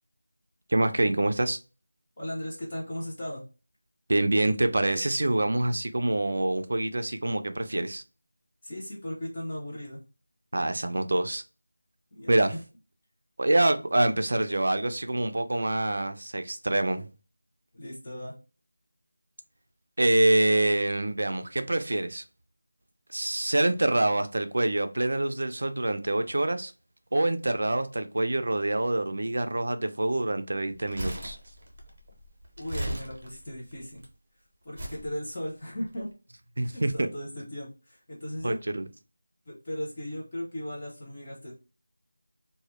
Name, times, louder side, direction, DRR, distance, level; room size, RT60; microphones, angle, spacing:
voice 1, 0.7-1.6 4.1-8.0 10.5-11.4 12.3-12.5 13.4-17.1 20.0-22.2 23.1-26.7 27.1-31.4 36.6-37.1 38.4-38.8, right 1 dB, 55° right, 0.3 m, -26 dB
voice 2, 2.2-3.4 8.6-10.0 12.1-12.3 17.7-18.3 32.6-34.0 34.6-36.1 36.7-38.6 39.5-41.5, equal, 25° left, 0.5 m, -37 dB
Crumpling crinkling, 30.7-34.1 34.7-35.1 35.8-35.9, right 1 dB, 30° right, 0.7 m, -37 dB
2.1 x 2.0 x 3.0 m
figure-of-eight pair, 175°, 0 cm